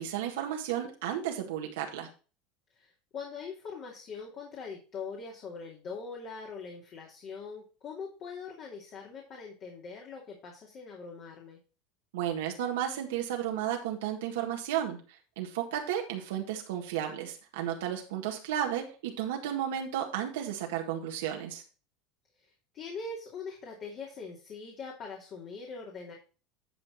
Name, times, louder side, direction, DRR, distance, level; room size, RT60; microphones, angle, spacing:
voice 1, 0.0-2.1 12.1-15.0 15.4-21.6, right 10 dB, 85° right, 1 dB, 1.7 m, -33 dB
voice 2, 2.7-11.6 22.4-26.1, left 4 dB, 45° left, -1 dB, 2.5 m, -42 dB
11.0 x 4.6 x 4.6 m, 0.35 s
supercardioid pair, 125°, 0 cm